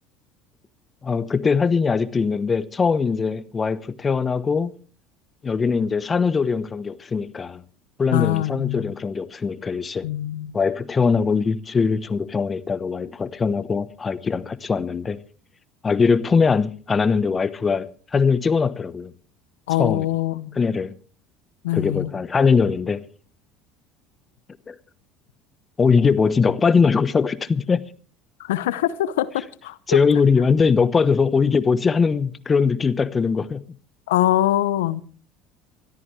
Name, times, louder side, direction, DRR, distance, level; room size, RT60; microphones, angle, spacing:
voice 1, 1.0-4.7 5.4-7.6 8.0-10.1 10.5-15.2 15.8-19.1 19.8-20.1 20.5-21.0 21.7-23.0 24.7-24.8 25.8-27.8 29.9-33.6, left 5 dB, 30° left, 1.0 m, -21 dB
voice 2, 8.1-8.9 10.0-10.5 19.7-20.6 21.6-22.1 28.4-30.0 34.1-35.0, left 14 dB, 80° left, 0.8 m, -23 dB
24.0 x 13.5 x 3.2 m
hypercardioid pair, 70°, 0 cm